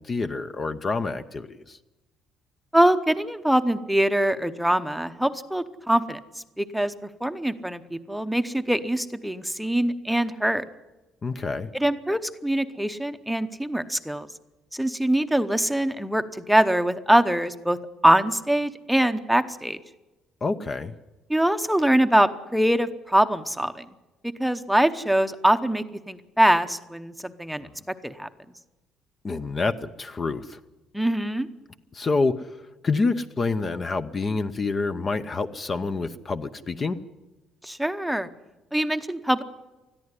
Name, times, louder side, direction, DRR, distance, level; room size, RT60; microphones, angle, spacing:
voice 1, 0.0-1.8 11.2-11.7 20.4-20.9 29.2-30.6 31.9-32.6 32.8-37.0, left 3 dB, 30° left, 10 dB, 0.8 m, -27 dB
voice 2, 2.7-6.2 6.6-6.9 7.2-10.6 11.7-14.3 14.7-17.8 18.0-19.8 21.3-23.8 24.2-27.7 28.0-28.3 30.9-31.5 37.6-38.3 38.7-39.4, right 1 dB, ahead, 9 dB, 0.9 m, -23 dB
20.5 x 14.0 x 9.8 m, 1.1 s
cardioid pair, 135°, 0 cm